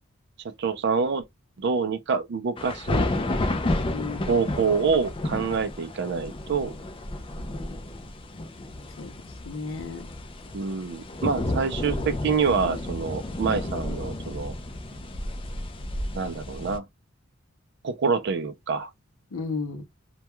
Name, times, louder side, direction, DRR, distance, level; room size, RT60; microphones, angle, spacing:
voice 1, 0.6-1.2 1.6-3.1 4.3-6.7 10.5-14.5 16.2-16.9 17.8-18.9, right 5 dB, 60° right, 0.4 m, -26 dB
sound 1, 2.6-16.8, left 1 dB, 25° left, 0.4 m, -31 dB
voice 2, 3.8-4.5 9.0-10.1 19.3-19.8, left 4 dB, 90° left, 0.6 m, -34 dB
2.2 x 2.2 x 2.9 m
head